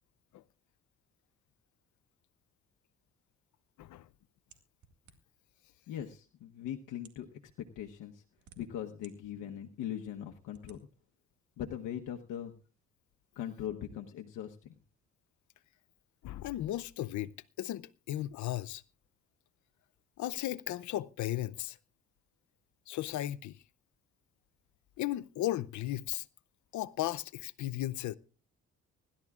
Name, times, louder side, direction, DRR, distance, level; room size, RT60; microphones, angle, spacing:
sound 1, 4.5-5.5 6.3-6.4 6.9-7.3 8.1-9.1 9.6-9.7 10.5-10.8, right 7 dB, 70° right, 2.1 m, -59 dB
voice 1, 5.9-8.2 8.6-10.9 11.6-12.5 13.3-14.7, left 10 dB, 90° left, 1.1 m, -40 dB
voice 2, 16.2-17.3 17.6-18.8 20.2-21.8 22.9-23.6 25.0-26.3 26.7-28.2, left 14 dB, 75° left, 0.6 m, -35 dB
25.0 x 12.5 x 2.4 m
cardioid pair, 90°, 30 cm